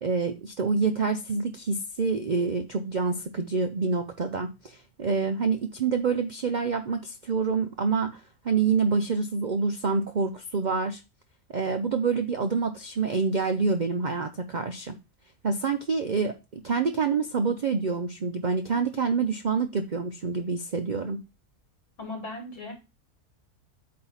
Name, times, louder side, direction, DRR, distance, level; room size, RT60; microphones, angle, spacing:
voice 1, 0.0-11.0 11.5-15.0 15.4-21.2, right 5 dB, 80° right, 7 dB, 0.4 m, -27 dB
voice 2, 22.0-22.7, left 2 dB, 55° left, 1 dB, 2.7 m, -37 dB
8.4 x 2.9 x 5.5 m, 0.27 s
omnidirectional pair, 1.6 m